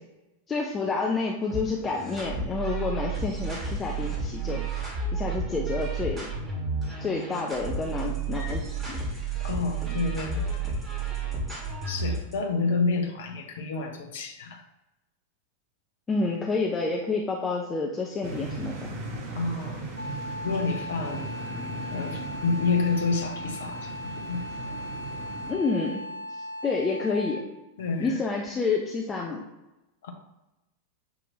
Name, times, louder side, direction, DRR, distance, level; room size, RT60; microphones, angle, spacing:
voice 1, 0.5-4.6 5.1-6.3 7.0-9.0 16.1-18.9 25.5-26.0 26.3-27.4 28.0-29.4, left 4 dB, 20° left, -1 dB, 0.6 m, -29 dB
sound 1, 1.5-12.3, right 4 dB, 15° right, 1.5 m, -31 dB
voice 2, 9.4-10.8 11.9-14.6 19.3-19.9 20.4-21.3 21.9-24.4 27.8-28.2 30.0-30.1, left 4 dB, 60° left, 4 dB, 0.7 m, -29 dB
sound 2, 18.2-25.5, right 2 dB, 45° right, 1.0 m, -38 dB
Wind instrument woodwind instrument, 20.0-27.6, left 1 dB, 85° right, 0.5 m, -38 dB
6.9 x 2.7 x 2.7 m, 0.98 s
figure-of-eight pair, 90°, 0 cm